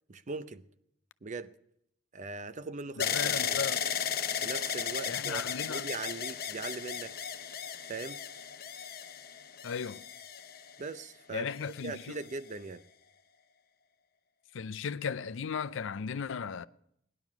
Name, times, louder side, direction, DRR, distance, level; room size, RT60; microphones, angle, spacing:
voice 1, 0.1-0.6 1.2-1.5 2.1-3.4 4.4-7.1 7.9-8.2 10.8-12.8, right 4 dB, 40° right, 0.6 m, -40 dB
voice 2, 3.0-3.9 5.1-5.9 9.6-10.0 11.3-12.2 14.5-16.7, left 6 dB, 65° left, 0.5 m, -36 dB
sound 1, 3.0-11.0 11.7-12.4, left 8 dB, 50° left, 0.8 m, -35 dB
18.5 x 11.0 x 6.0 m
head